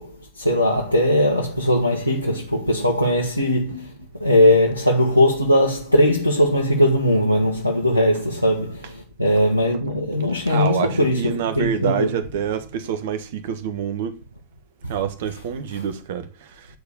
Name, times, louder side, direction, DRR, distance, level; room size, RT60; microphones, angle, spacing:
voice 1, 0.0-3.9 4.2-12.1 14.8-14.9 15.7-15.8, left 1 dB, 90° right, 1.5 m, -19 dB
voice 2, 10.5-14.2 14.9-16.7, right 8 dB, 55° right, 1.4 m, -27 dB
10.5 x 4.6 x 6.8 m
figure-of-eight pair, 90°, 0 cm